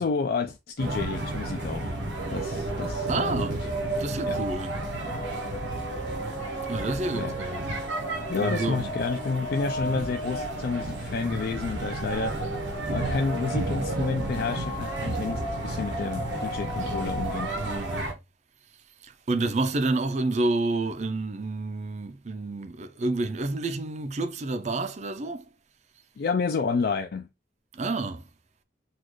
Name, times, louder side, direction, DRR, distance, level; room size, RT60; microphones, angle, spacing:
voice 1, 0.0-1.9 2.3-3.5 4.2-4.4 7.1-7.4 8.3-12.4 12.9-17.5 26.2-27.3, left 4 dB, 55° left, 0.3 m, -30 dB
sound 1, 0.8-18.1, right 1 dB, 80° right, 1.0 m, -31 dB
voice 2, 3.1-3.6 4.0-4.8 6.7-7.7 8.4-8.9 17.6-18.2 19.0-25.5 27.7-28.3, right 2 dB, 40° right, 0.4 m, -29 dB
4.1 x 2.3 x 3.0 m
head